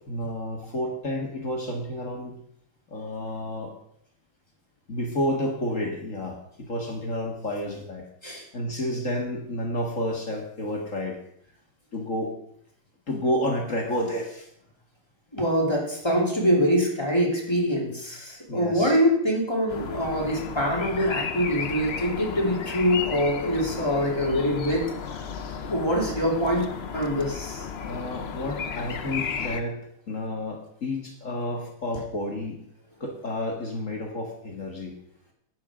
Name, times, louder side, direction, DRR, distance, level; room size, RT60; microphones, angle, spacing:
voice 1, 0.0-2.4 2.9-3.7 4.9-8.1 8.5-11.2 11.9-12.3 13.1-14.5 18.5-18.9 27.8-32.6 33.0-34.9, left 1 dB, 40° left, 1 dB, 1.9 m, -30 dB
voice 2, 15.3-24.9 25.7-26.7 26.9-27.6, equal, 10° left, -2 dB, 2.8 m, -24 dB
sound 1, 19.7-29.6, left 6 dB, 85° left, 0.5 m, -34 dB
11.0 x 9.8 x 4.9 m, 0.70 s
omnidirectional pair, 2.3 m